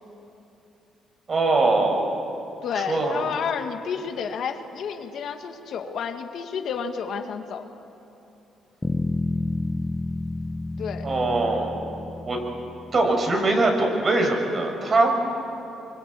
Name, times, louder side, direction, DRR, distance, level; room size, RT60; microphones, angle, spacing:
voice 1, 1.3-2.1 2.7-3.2 11.0-11.8 12.2-12.4 12.9-15.1, right 2 dB, 40° right, 2 dB, 6.1 m, -22 dB
voice 2, 2.6-7.7 10.8-11.1, left 6 dB, 70° left, 5 dB, 2.0 m, -30 dB
Bass guitar, 8.8-13.2, left 2 dB, 15° left, 0.9 m, -30 dB
25.5 x 24.0 x 8.5 m, 2.9 s
cardioid pair, 90°, 0 cm